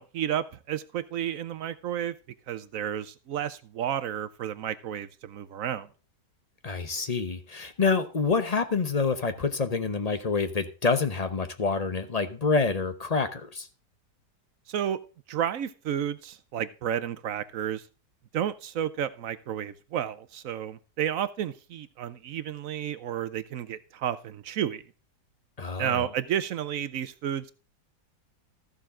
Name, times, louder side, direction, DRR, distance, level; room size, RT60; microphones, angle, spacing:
voice 1, 0.0-2.1 2.5-5.9 14.7-15.0 15.3-17.8 18.3-24.8 25.8-27.5, right 10 dB, 65° right, 0.9 m, -31 dB
voice 2, 6.6-13.7 25.6-26.1, left 4 dB, 35° left, 0.7 m, -27 dB
14.0 x 7.0 x 3.6 m
omnidirectional pair, 1.8 m